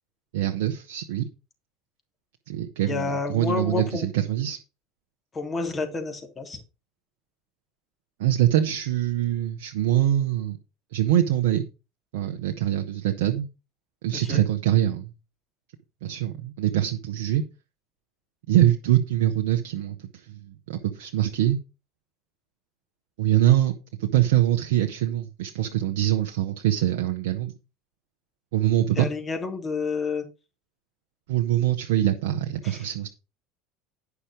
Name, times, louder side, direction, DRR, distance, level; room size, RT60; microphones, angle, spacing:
voice 1, 0.3-1.2 2.5-4.6 8.2-10.6 10.9-11.6 12.1-13.5 14.0-15.1 16.0-17.4 18.5-21.6 23.2-23.7 24.0-27.5 28.5-29.1 31.3-33.1, right 12 dB, 75° right, 1.0 m, -24 dB
voice 2, 2.9-4.1 5.3-6.6 14.1-14.4 28.9-30.3 32.6-32.8, left 4 dB, 30° left, 2.9 m, -29 dB
9.8 x 5.9 x 5.1 m
hypercardioid pair, 85°, 0 cm